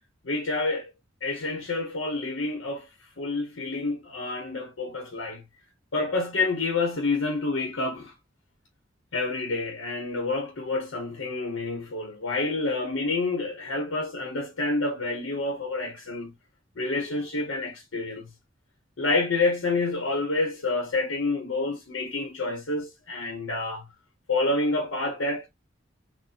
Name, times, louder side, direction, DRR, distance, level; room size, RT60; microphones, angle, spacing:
voice 1, 0.2-0.9 1.2-2.9 3.2-5.4 5.9-8.1 9.1-16.3 16.8-18.3 19.0-23.9 24.3-25.5, left 3 dB, 80° left, 0.9 m, -28 dB
3.9 x 2.1 x 2.7 m
head